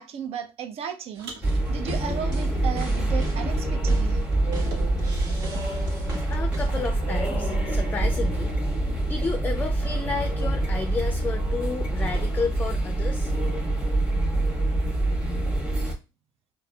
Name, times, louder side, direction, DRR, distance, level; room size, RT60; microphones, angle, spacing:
voice 1, 0.0-4.3, right 8 dB, 60° right, 0.5 m, -35 dB
sound 1, 1.2-7.6, right 1 dB, 40° right, 1.2 m, -38 dB
Car, 1.2-6.1, right 2 dB, 90° right, 0.8 m, -45 dB
sound 2, 1.4-15.9, right 2 dB, 10° right, 1.2 m, -25 dB
voice 2, 6.3-8.7 9.0-13.3, left 4 dB, 15° left, 0.4 m, -32 dB
3.9 x 2.0 x 2.2 m
supercardioid pair, 75°, 12 cm